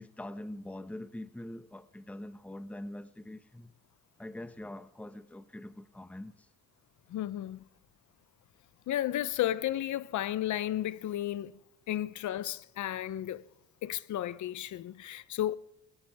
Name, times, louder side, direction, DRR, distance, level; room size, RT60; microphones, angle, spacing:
voice 1, 0.0-3.7 4.2-6.5, left 1 dB, 5° left, 1.0 m, -43 dB
voice 2, 7.1-7.6 8.9-11.5 11.9-13.4 13.8-15.6, left 12 dB, 70° left, 0.8 m, -33 dB
21.0 x 19.0 x 3.6 m
cardioid pair, 90°, 30 cm